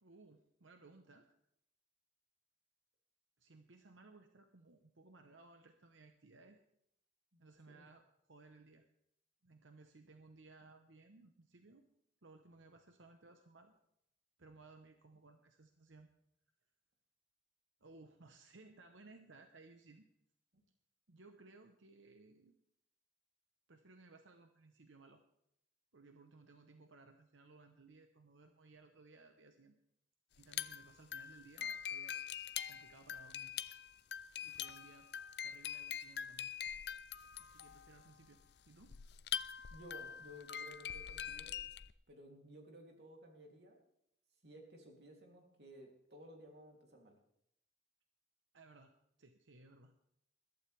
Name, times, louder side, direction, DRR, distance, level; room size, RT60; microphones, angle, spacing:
voice 1, 0.0-1.4 3.4-6.6 7.4-8.9 9.4-11.9 12.2-13.7 14.4-16.1 17.8-20.1 21.1-22.6 23.7-25.2 25.9-29.7 30.4-32.2 32.7-33.5 34.4-35.1 35.4-36.5 37.4-39.0 48.5-48.9 49.2-49.9, right 3 dB, 90° right, 6 dB, 1.0 m, -61 dB
sound 1, 30.4-41.9, left 9 dB, 60° left, 0.5 m, -44 dB
voice 2, 39.7-41.5 42.1-43.8 44.4-47.2, equal, 60° right, 1 dB, 3.1 m, -56 dB
21.5 x 12.0 x 3.5 m, 0.74 s
head